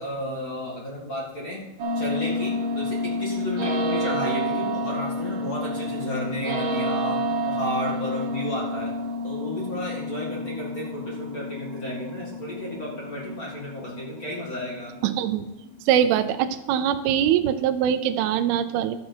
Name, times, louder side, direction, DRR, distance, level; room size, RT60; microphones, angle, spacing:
voice 1, 0.0-1.6 1.9-8.9 9.2-15.1, left 1 dB, 50° left, -4 dB, 1.0 m, -33 dB
sound 1, 1.8-15.7, left 1 dB, 65° right, 1.5 m, -29 dB
voice 2, 15.0-15.4 15.9-19.0, right 10 dB, 85° right, 10 dB, 2.2 m, -22 dB
13.0 x 7.6 x 4.4 m, 0.90 s
omnidirectional pair, 5.0 m